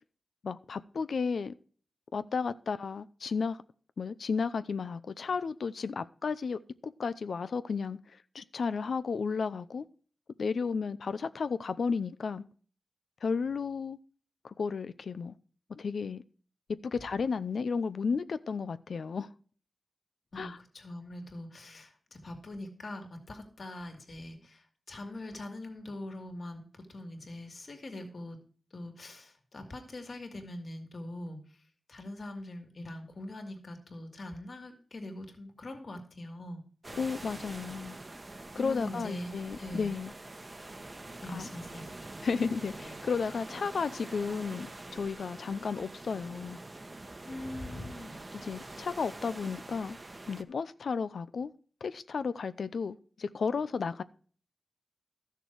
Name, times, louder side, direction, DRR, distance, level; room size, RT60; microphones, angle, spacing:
voice 1, 0.4-1.5 2.1-3.6 4.0-8.0 8.3-9.9 10.4-12.4 13.2-14.0 14.4-15.4 15.7-16.2 16.8-19.3 20.3-20.6 36.9-38.0 38.5-40.1 41.3-41.5 42.2-46.6 48.3-50.0 50.3-51.5 51.8-54.0, left 5 dB, 90° left, 0.6 m, -33 dB
voice 2, 20.3-24.6 24.9-28.4 28.7-31.4 31.9-36.6 37.6-37.7 38.6-39.9 41.2-41.8 47.3-48.2, left 1 dB, 60° left, 2.5 m, -42 dB
sound 1, 36.8-50.4, right 2 dB, 30° right, 1.0 m, -45 dB
13.5 x 6.7 x 4.6 m
wide cardioid pair, 100°, 0 cm